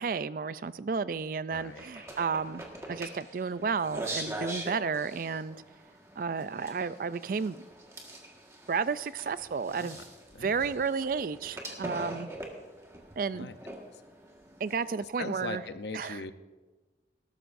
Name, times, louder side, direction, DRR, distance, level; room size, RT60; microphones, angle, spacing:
voice 1, 0.0-2.6 2.9-5.6 6.2-7.6 8.7-10.0 10.4-12.3 13.2-13.5 14.6-15.6 15.9-16.2, right 5 dB, 50° right, 16 dB, 0.4 m, -32 dB
voice 2, 1.5-1.9 9.8-10.0 10.3-10.5 13.3-13.5 15.2-16.3, left 3 dB, 75° left, 9 dB, 0.8 m, -39 dB
sound 1, 1.5-15.0, right 1 dB, 15° right, 1.6 m, -43 dB
19.5 x 12.5 x 2.6 m, 1.3 s
head